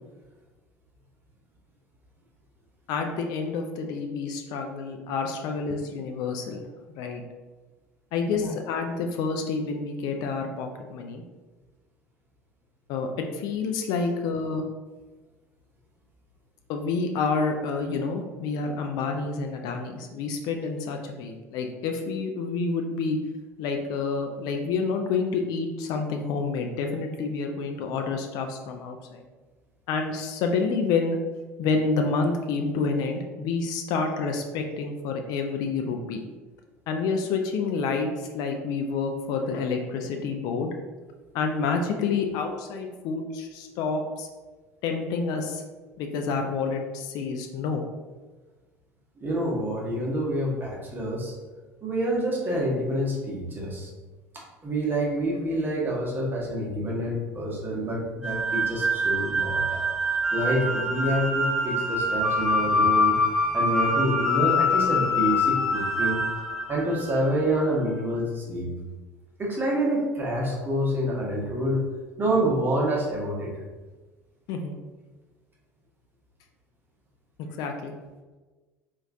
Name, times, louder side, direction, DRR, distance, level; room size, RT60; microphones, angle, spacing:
voice 1, 2.9-6.6 6.9-7.2 8.1-11.2 12.9-14.6 16.7-23.2 23.6-29.2 29.9-31.2 31.6-36.2 36.9-40.7 41.3-44.3 44.8-45.6 46.0-47.9 74.5-74.8 77.4-77.9, left 4 dB, 50° left, 4 dB, 0.4 m, -28 dB
voice 2, 49.2-51.3 51.8-53.9 54.3-59.8 60.3-63.1 63.5-66.2 66.7-68.7 69.4-71.8 72.2-73.5, right 1 dB, 25° right, -3 dB, 1.0 m, -27 dB
sound 1, 58.2-67.4, left 2 dB, ahead, 1.2 m, -25 dB
3.0 x 2.4 x 3.6 m, 1.3 s
figure-of-eight pair, 65°, 9 cm